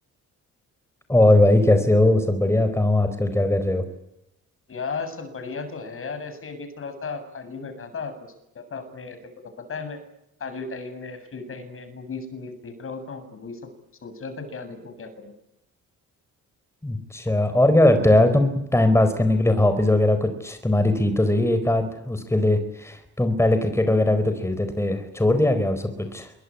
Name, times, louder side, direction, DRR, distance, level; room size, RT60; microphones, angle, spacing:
voice 1, 1.1-3.9 16.8-26.3, left 1 dB, 10° left, 9 dB, 4.4 m, -20 dB
voice 2, 4.7-8.1 8.5-9.2 9.6-10.0 10.4-13.7 14.0-15.3, left 4 dB, 45° left, 9 dB, 7.6 m, -35 dB
27.0 x 23.0 x 8.6 m, 0.83 s
cardioid pair, 90°, 30 cm